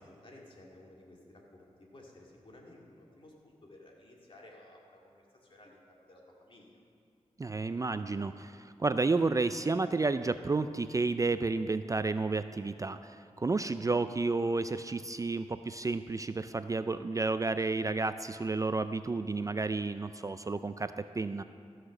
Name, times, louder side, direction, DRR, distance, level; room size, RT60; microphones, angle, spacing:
voice 1, 0.0-5.2 5.5-6.8, left 1 dB, 45° left, -2 dB, 2.2 m, -55 dB
voice 2, 7.4-21.4, right 3 dB, 30° right, 11 dB, 0.3 m, -31 dB
14.5 x 5.8 x 6.5 m, 2.3 s
cardioid pair, 65°, 12 cm